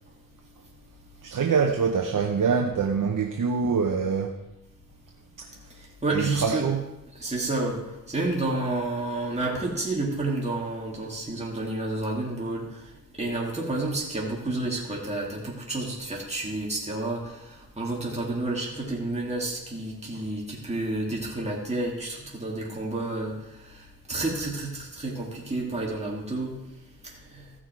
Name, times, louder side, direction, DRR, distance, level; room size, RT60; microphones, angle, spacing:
voice 1, 1.2-4.4 5.4-5.7 6.1-6.8, right 5 dB, 65° right, 0.9 m, -25 dB
voice 2, 6.0-6.7 7.2-12.7 13.2-17.5 17.8-23.4 23.7-23.8 24.1-26.6 27.0-27.5, right 2 dB, 20° right, 2.6 m, -30 dB
15.0 x 6.3 x 4.6 m
cardioid pair, 65°, 34 cm